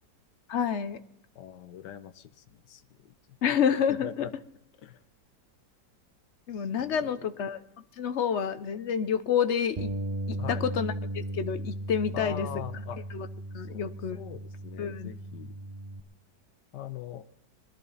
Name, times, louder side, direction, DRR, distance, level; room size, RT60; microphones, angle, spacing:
voice 1, 0.5-1.0 3.4-4.1 6.5-7.6 8.0-9.9 10.3-12.5 13.1-13.3 13.5-14.2 14.8-15.1, left 7 dB, 55° left, 12 dB, 0.9 m, -28 dB
voice 2, 1.3-3.4 3.9-4.3 4.8-5.0 6.5-7.1 10.4-10.7 12.1-13.0 13.7-15.5 16.7-17.2, left 10 dB, 75° left, 11 dB, 1.5 m, -42 dB
Bass guitar, 9.8-16.0, right 1 dB, 55° right, 0.4 m, -36 dB
21.5 x 13.5 x 4.2 m, 0.75 s
omnidirectional pair, 1.9 m